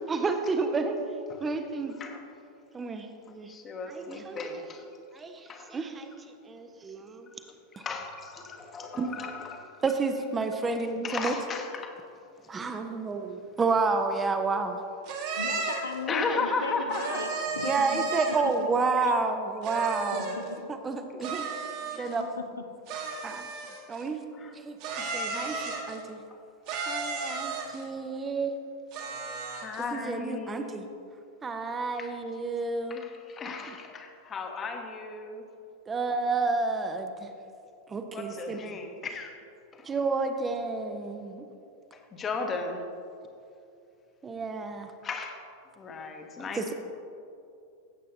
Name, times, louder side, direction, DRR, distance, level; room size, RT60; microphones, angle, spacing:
voice 1, 0.1-1.0 1.4-1.9 2.7-3.5 3.9-4.4 5.1-6.1 6.5-7.3 7.8-7.9 8.9-9.1 9.8-11.3 12.5-14.8 17.6-20.4 20.7-21.5 21.8-22.3 23.2-23.4 23.9-24.2 24.5-24.8 25.1-25.6 25.9-26.2 26.9-28.5 29.9-30.8 31.4-33.1 35.9-37.3 37.9-38.6 39.9-41.5 44.2-44.9 46.5-46.7, right 4 dB, 20° right, 6 dB, 0.6 m, -30 dB
voice 2, 3.3-4.8 5.5-5.8 7.4-9.8 11.0-11.9 16.1-17.3 21.2-21.3 24.3-24.6 24.9-25.2 29.5-30.8 32.0-32.1 32.9-35.4 38.1-39.4 39.7-39.9 41.9-42.8 45.0-45.4 45.8-46.7, left 4 dB, 25° left, 5 dB, 1.0 m, -35 dB
sound 1, 15.1-16.0 16.9-18.5 19.6-20.5 21.2-22.2 22.9-24.0 24.8-26.0 26.7-27.8 28.9-29.8, right 4 dB, 45° right, 1.4 m, -33 dB
voice 3, 15.4-18.1 18.6-18.7 20.1-20.7 22.4-22.7, left 4 dB, 70° left, 6 dB, 0.6 m, -37 dB
15.5 x 7.6 x 2.7 m, 2.5 s
figure-of-eight pair, 90°, 0 cm